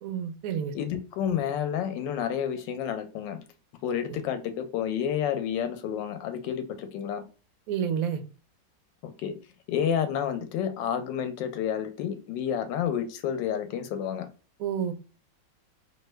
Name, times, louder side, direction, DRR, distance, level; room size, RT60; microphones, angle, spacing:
voice 1, 0.0-0.7 4.1-4.2 7.7-8.2 14.6-14.9, right 8 dB, 80° right, 7 dB, 0.7 m, -29 dB
voice 2, 0.7-3.4 3.8-7.2 9.0-9.3 9.7-14.3, left 9 dB, 75° left, 8 dB, 1.2 m, -30 dB
3.1 x 2.1 x 3.2 m, 0.35 s
omnidirectional pair, 2.0 m